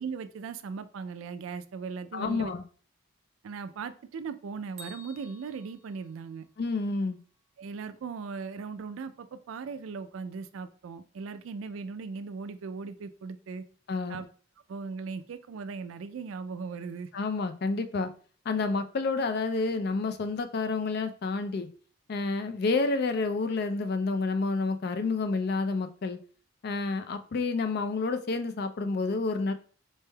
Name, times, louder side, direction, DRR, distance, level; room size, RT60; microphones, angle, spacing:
voice 1, 0.0-2.5 3.4-6.5 7.6-13.6 14.1-14.3 14.7-17.1, right 5 dB, 90° right, 0.4 m, -38 dB
voice 2, 2.1-2.6 6.6-7.2 13.9-14.2 17.1-18.1 18.5-21.7 22.1-26.2 26.6-29.5, left 3 dB, 55° left, 0.4 m, -29 dB
Bell, 4.8-6.8, right 1 dB, 35° right, 0.6 m, -51 dB
4.2 x 3.3 x 2.2 m
head